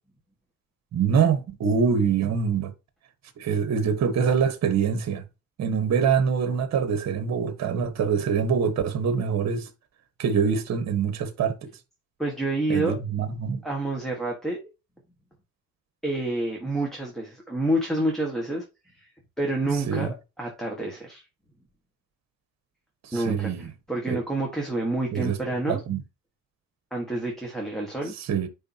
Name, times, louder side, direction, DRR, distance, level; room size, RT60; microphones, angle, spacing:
voice 1, 0.9-2.7 3.4-5.2 5.6-9.7 10.2-11.7 12.7-13.6 19.9-20.1 23.1-23.7 24.1-24.2 25.1-25.4 25.7-26.0 28.2-28.5, right 6 dB, 50° right, 1.5 m, -24 dB
voice 2, 12.2-12.9 13.6-14.6 16.0-18.6 18.9-19.1 19.4-20.1 20.4-21.2 23.1-25.8 26.9-28.1, right 1 dB, ahead, 1.7 m, -28 dB
10.0 x 3.9 x 2.9 m
cardioid pair, 135°, 33 cm